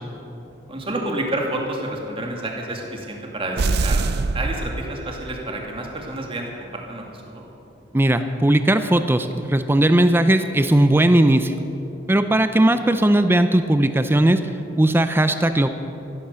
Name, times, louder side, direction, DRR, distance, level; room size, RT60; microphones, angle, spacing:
voice 1, 0.7-4.0 4.3-7.4, right 1 dB, 30° right, 0 dB, 2.3 m, -29 dB
sound 1, 3.6-5.4, right 3 dB, 60° right, 0.5 m, -24 dB
voice 2, 7.9-11.5 12.1-14.4 14.8-15.7, right 1 dB, 10° right, 9 dB, 0.5 m, -17 dB
14.5 x 12.0 x 6.9 m, 2.9 s
head